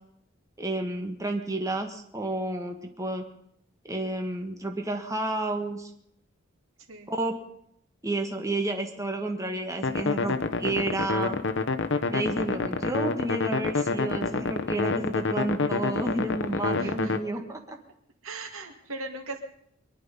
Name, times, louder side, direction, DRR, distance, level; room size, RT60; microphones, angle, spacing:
voice 1, 0.6-3.2 3.9-5.9 7.1-7.3 8.0-11.4 12.1-17.6, right 2 dB, 15° right, 3 dB, 1.6 m, -31 dB
voice 2, 6.8-7.1 16.8-17.2 18.2-19.4, right 2 dB, 90° right, 5 dB, 2.3 m, -38 dB
sound 1, 9.8-17.2, left 3 dB, 60° left, 1.0 m, -28 dB
23.5 x 11.0 x 5.5 m, 0.72 s
head